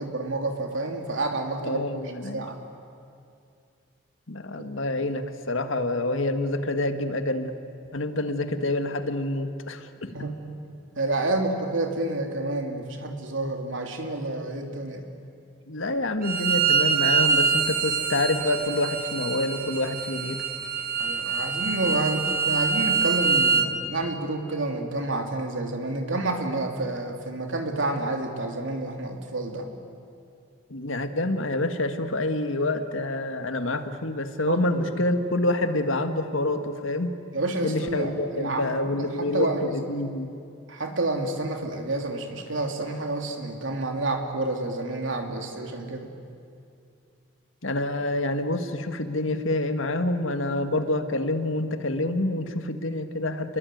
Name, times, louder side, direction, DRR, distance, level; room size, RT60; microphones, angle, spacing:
voice 1, 0.0-1.8 2.3-2.6 4.6-4.7 10.1-15.1 21.0-29.7 34.5-34.8 37.3-38.8 39.2-39.7 40.7-46.1, right 2 dB, 75° right, 4 dB, 3.1 m, -29 dB
voice 2, 1.6-2.5 4.3-7.5 7.9-10.1 15.7-20.4 30.7-37.1 37.6-40.3 47.6-53.6, left 2 dB, 85° left, 8 dB, 1.7 m, -27 dB
Bowed string instrument, 16.2-23.7, right 5 dB, 45° right, 1.6 m, -25 dB
29.0 x 21.5 x 9.3 m, 2.5 s
head